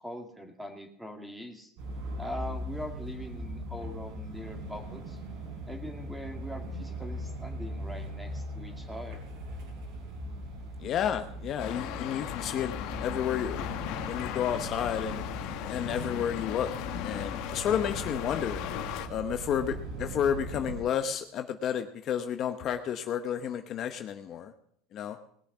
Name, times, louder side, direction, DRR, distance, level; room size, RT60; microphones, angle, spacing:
voice 1, 0.0-1.7 2.2-5.2 5.7-9.2, equal, 5° right, 4 dB, 2.1 m, -42 dB
sound 1, 1.8-20.8, right 1 dB, 65° right, 4.3 m, -40 dB
voice 2, 10.8-13.6 14.1-15.2 15.7-16.7 17.0-18.6 19.1-24.5 24.9-25.2, left 9 dB, 40° left, 8 dB, 0.8 m, -31 dB
sound 2, 11.6-19.1, left 10 dB, 60° left, 1.4 m, -36 dB
19.5 x 7.0 x 6.0 m, 0.69 s
supercardioid pair, 135°, 0 cm